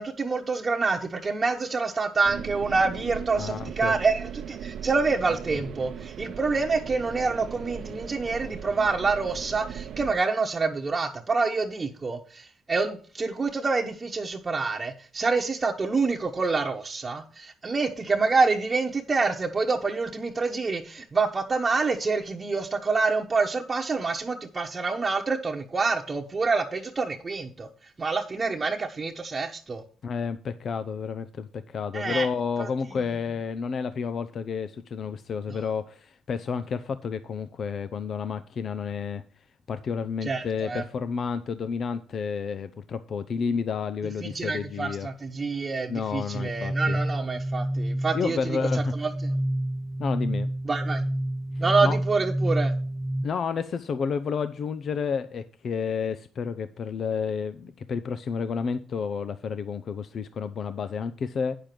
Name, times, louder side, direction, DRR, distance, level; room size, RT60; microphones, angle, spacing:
voice 1, 0.0-27.7 28.0-29.8 31.9-32.3 32.6-32.7 40.2-40.8 44.3-48.4 49.0-49.1 50.7-51.0 51.6-52.7, right 4 dB, 30° right, 1.1 m, -27 dB
sound 1, 2.2-10.2, right 8 dB, 70° right, 0.8 m, -38 dB
voice 2, 3.4-4.0 5.5-5.6 30.0-39.2 39.7-45.1 45.9-47.0 48.1-48.9 50.0-50.5 51.6-52.0 53.2-61.6, left 6 dB, 55° left, 0.6 m, -30 dB
sound 2, 46.3-53.3, right 1 dB, 10° right, 0.5 m, -28 dB
9.0 x 6.7 x 5.9 m
cardioid pair, 90°, 0 cm